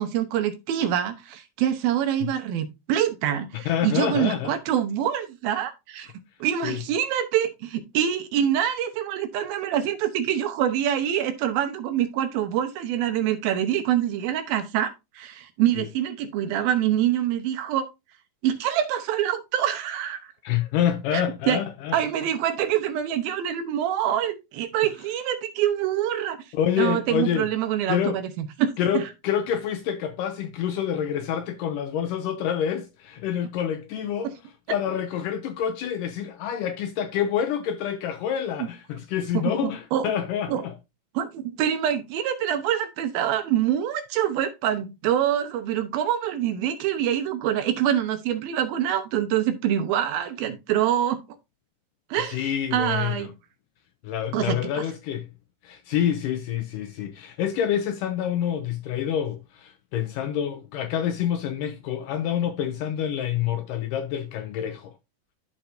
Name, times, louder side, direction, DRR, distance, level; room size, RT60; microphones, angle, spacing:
voice 1, 0.0-6.1 6.4-17.9 18.4-20.2 21.1-21.6 21.9-26.4 26.8-29.0 34.2-34.3 39.3-39.5 39.9-40.1 40.5-40.6 41.1-51.2 52.1-52.4 52.7-53.3 54.3-54.6, right 10 dB, 80° right, 2.8 m, -25 dB
voice 2, 3.5-4.6 6.6-6.8 15.8-15.9 20.4-22.0 26.5-27.5 27.9-28.2 28.8-34.4 34.7-40.8 52.3-53.3 54.0-55.3 55.6-65.0, left 9 dB, 80° left, 1.9 m, -27 dB
13.5 x 4.5 x 2.7 m
omnidirectional pair, 4.3 m